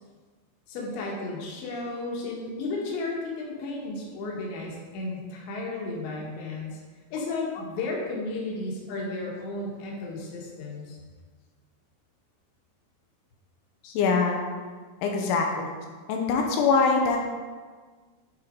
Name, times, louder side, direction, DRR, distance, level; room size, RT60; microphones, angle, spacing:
voice 1, 0.7-6.8 7.1-11.0, left 2 dB, 70° left, -2 dB, 3.3 m, -33 dB
voice 2, 7.3-7.6 13.8-14.4 15.0-15.7 16.1-17.2, left 4 dB, 85° left, 2 dB, 2.9 m, -24 dB
11.5 x 4.4 x 3.7 m, 1.5 s
omnidirectional pair, 5.9 m